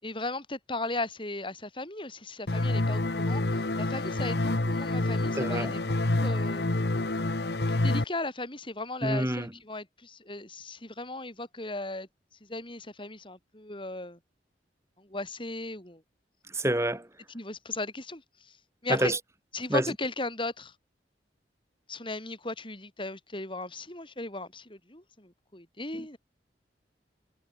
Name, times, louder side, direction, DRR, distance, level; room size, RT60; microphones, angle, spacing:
voice 1, 0.0-6.7 7.7-12.1 12.5-14.2 15.0-16.0 17.3-18.6 18.8-19.1 19.5-20.7 21.9-26.2, left 2 dB, 30° left, 7.3 m, -36 dB
sound 1, 2.5-8.0, left 2 dB, 70° left, 1.3 m, -27 dB
voice 2, 5.4-5.7 9.0-9.5 16.5-17.1 18.9-19.2 19.7-19.8, right 1 dB, 15° right, 4.5 m, -27 dB
head